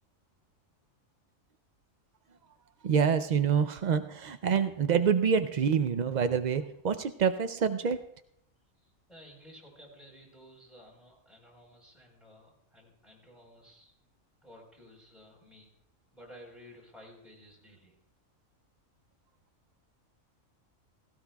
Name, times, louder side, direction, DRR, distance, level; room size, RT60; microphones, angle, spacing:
voice 1, 2.8-8.1, right 7 dB, 85° right, 10 dB, 0.4 m, -27 dB
voice 2, 8.8-13.9 14.4-15.7 16.1-18.0, equal, ahead, -2 dB, 4.2 m, -54 dB
16.5 x 16.0 x 2.3 m, 0.72 s
omnidirectional pair, 1.4 m